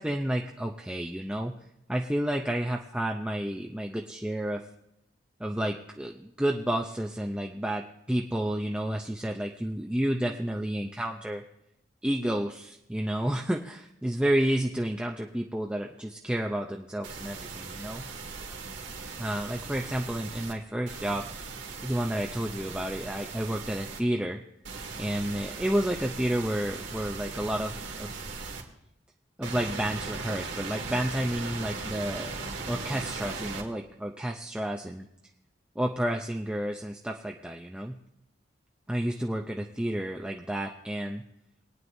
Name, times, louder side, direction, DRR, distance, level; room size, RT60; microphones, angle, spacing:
voice 1, 0.0-1.5 1.9-4.6 5.4-11.4 12.0-18.0 19.2-21.3 21.8-24.4 25.0-28.1 29.4-35.1 35.8-38.0 38.9-41.2, right 1 dB, 5° right, 1 dB, 0.5 m, -30 dB
sound 1, 17.0-20.5 20.9-24.0 24.6-28.6 29.4-33.6, right 4 dB, 75° right, 2.1 m, -38 dB
22.5 x 9.4 x 2.7 m, 0.81 s
head